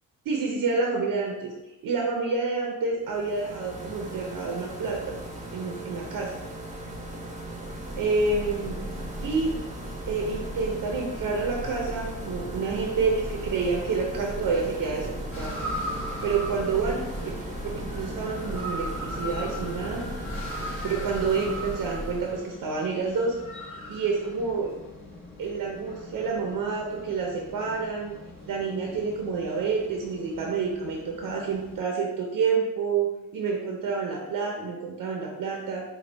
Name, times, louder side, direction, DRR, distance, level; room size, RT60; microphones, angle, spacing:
voice 1, 0.3-1.5 1.8-5.2 5.5-6.3 8.0-8.8 9.2-9.5 10.1-15.6 16.2-17.3 17.6-20.1 20.8-23.3 23.9-24.7 25.4-28.2 28.4-35.8, right 4 dB, 60° right, 0 dB, 0.7 m, -28 dB
sound 1, 3.0-22.4, right 1 dB, 20° right, 0.8 m, -39 dB
Church bell, 7.6-22.5, equal, 10° left, 0.7 m, -39 dB
sound 2, 15.3-31.8, equal, 35° left, 1.4 m, -40 dB
5.0 x 2.3 x 3.3 m, 1.0 s
cardioid pair, 95°, 36 cm